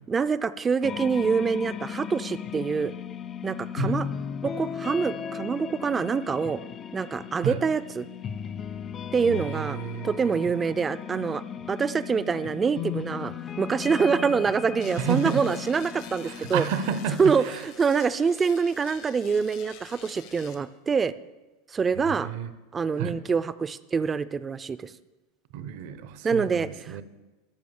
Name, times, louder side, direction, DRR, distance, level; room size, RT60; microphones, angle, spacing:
voice 1, 0.1-2.9 3.4-4.1 4.4-6.6 6.9-8.1 9.1-9.8 10.0-11.4 11.7-16.6 17.2-21.1 21.7-22.3 22.7-24.9 26.2-27.0, right 5 dB, 20° right, 15 dB, 0.5 m, -25 dB
sound 1, 0.8-17.2, left 8 dB, 30° left, 0.4 m, -36 dB
voice 2, 9.2-10.4 15.0-15.4 16.2-17.6 21.9-22.5 23.0-23.2 25.5-27.0, right 7 dB, 65° right, 12 dB, 0.9 m, -31 dB
sound 2, 14.8-20.6, left 9 dB, 65° left, 1.2 m, -48 dB
13.0 x 5.2 x 7.2 m, 1.2 s
hypercardioid pair, 110°, 0 cm